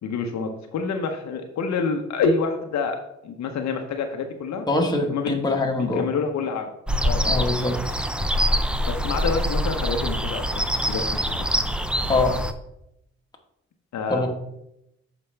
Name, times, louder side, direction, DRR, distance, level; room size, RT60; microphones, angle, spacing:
voice 1, 0.0-3.0 3.2-4.7 5.1-5.3 5.6-6.7 7.0-7.3 8.9-11.5 13.9-14.3, left 4 dB, 65° left, 5 dB, 0.8 m, -27 dB
voice 2, 4.7-6.1 7.3-7.8 12.1-12.3 14.1-14.3, left 2 dB, 15° left, 1 dB, 1.3 m, -23 dB
sound 1, 6.9-12.5, equal, 5° right, 0.4 m, -24 dB
6.8 x 5.0 x 3.3 m, 0.80 s
cardioid pair, 90°, 30 cm